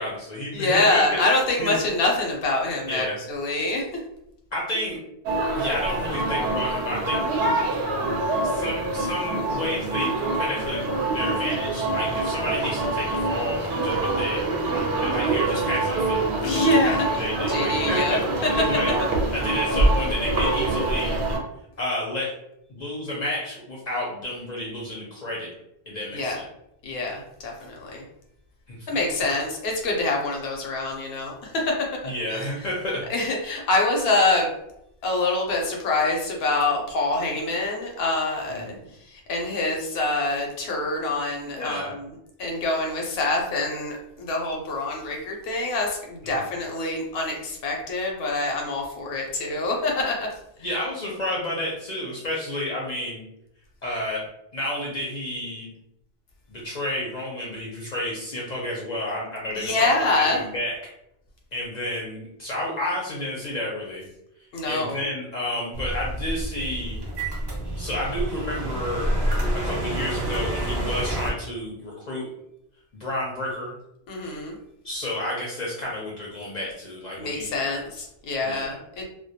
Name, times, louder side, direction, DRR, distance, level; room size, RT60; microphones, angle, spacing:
voice 1, 0.0-1.2 1.6-1.7 2.9-3.2 4.5-5.0 5.5-7.2 8.4-10.8 11.1-14.4 15.0-18.2 18.6-19.0 19.3-21.2 21.8-22.3 22.7-25.5 25.9-26.4 28.7-28.9 32.0-33.0 38.5-38.8 41.5-42.0 46.2-46.5 50.6-53.2 53.8-54.2 54.5-55.7 56.5-60.8 61.5-64.0 64.7-67.0 67.8-69.1 69.5-72.3 73.0-73.7 74.8-77.8 78.4-78.8, left 1 dB, 55° left, -4 dB, 0.6 m, -30 dB
voice 2, 0.5-4.0 16.4-17.1 17.5-18.5 26.1-26.4 26.8-28.0 28.9-31.7 32.3-32.5 33.1-34.5 35.0-38.8 39.1-41.9 42.4-50.3 59.6-60.4 64.5-65.0 74.1-74.6 77.2-79.0, left 2 dB, 80° left, 0 dB, 0.8 m, -25 dB
sound 1, 5.3-21.4, right 2 dB, 75° right, 0.8 m, -25 dB
sound 2, 65.7-71.3, right 1 dB, 30° right, 0.6 m, -28 dB
2.2 x 2.1 x 2.7 m, 0.81 s
omnidirectional pair, 1.0 m